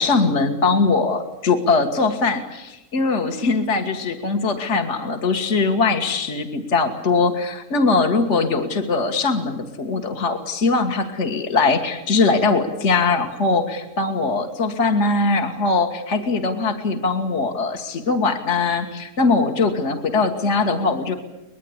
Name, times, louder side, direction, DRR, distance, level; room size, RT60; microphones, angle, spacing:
voice 1, 0.0-21.2, left 3 dB, 50° left, 5 dB, 2.1 m, -21 dB
23.5 x 21.0 x 8.8 m, 0.96 s
omnidirectional pair, 1.6 m